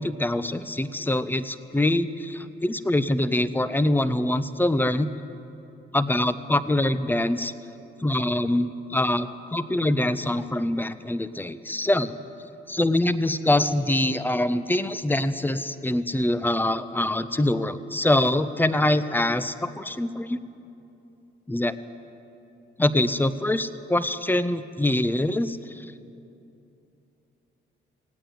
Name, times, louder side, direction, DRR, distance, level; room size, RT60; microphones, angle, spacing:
voice 1, 0.0-5.1 5.9-7.5 8.0-12.1 12.7-20.4 21.5-21.8 22.8-25.8, left 1 dB, 10° left, 13 dB, 0.6 m, -24 dB
16.5 x 8.9 x 9.2 m, 2.9 s
cardioid pair, 90°, 20 cm